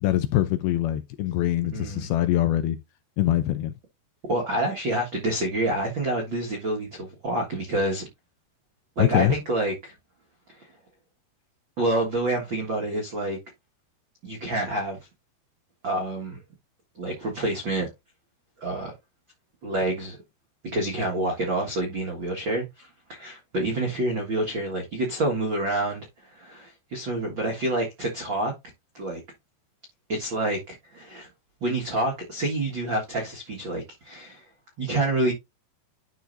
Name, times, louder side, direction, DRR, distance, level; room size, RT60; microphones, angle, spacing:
voice 1, 0.0-2.8 3.2-3.8 9.0-9.3, left 13 dB, 80° left, 2.3 m, -23 dB
voice 2, 1.7-2.1 4.3-8.1 9.0-9.9 10.5-10.7 11.8-13.4 14.2-15.0 15.8-16.4 16.9-17.9 18.6-18.9 19.6-20.2 20.7-28.5 28.9-29.2 30.1-31.3 31.6-34.4 34.8-35.3, right 1 dB, 70° right, 1.1 m, -28 dB
11.5 x 4.4 x 2.6 m
omnidirectional pair, 4.9 m